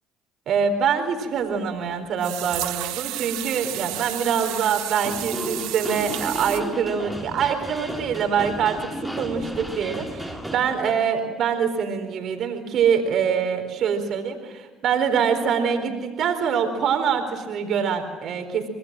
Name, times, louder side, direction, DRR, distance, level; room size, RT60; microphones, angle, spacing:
voice 1, 0.5-18.7, right 7 dB, 65° right, 6 dB, 4.3 m, -24 dB
sound 1, 1.4-1.5 2.2-6.6, right 16 dB, 80° right, 1.2 m, -32 dB
sound 2, 5.0-10.6, equal, 5° left, 6.4 m, -33 dB
26.5 x 20.0 x 7.7 m, 1.4 s
supercardioid pair, 70°, 0 cm